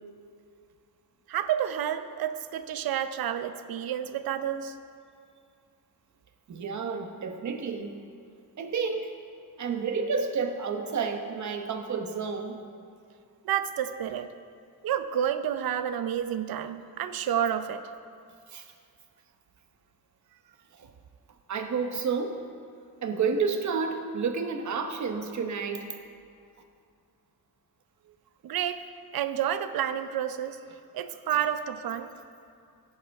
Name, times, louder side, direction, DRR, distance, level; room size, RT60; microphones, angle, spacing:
voice 1, 1.3-4.7 13.4-14.3 14.8-17.8 28.4-28.8 29.1-30.6 30.9-32.1, right 10 dB, 65° right, 11 dB, 0.7 m, -30 dB
voice 2, 6.5-8.0 8.6-9.1 9.6-12.6 18.5-18.7 20.7-20.9 21.5-22.4 23.0-25.9, right 5 dB, 50° right, 6 dB, 1.0 m, -30 dB
16.5 x 9.7 x 3.5 m, 2.4 s
cardioid pair, 125°, 38 cm